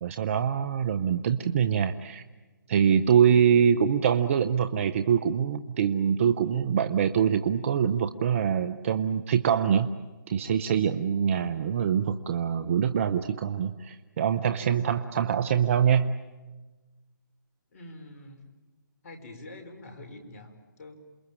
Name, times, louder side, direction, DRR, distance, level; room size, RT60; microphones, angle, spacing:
voice 1, 0.0-2.2 2.7-9.9 10.3-16.2, right 8 dB, 40° right, 11 dB, 0.8 m, -24 dB
voice 2, 17.7-18.4 19.0-21.0, left 2 dB, 45° left, 5 dB, 4.9 m, -45 dB
28.0 x 21.5 x 8.8 m, 1.2 s
figure-of-eight pair, 145°, 11 cm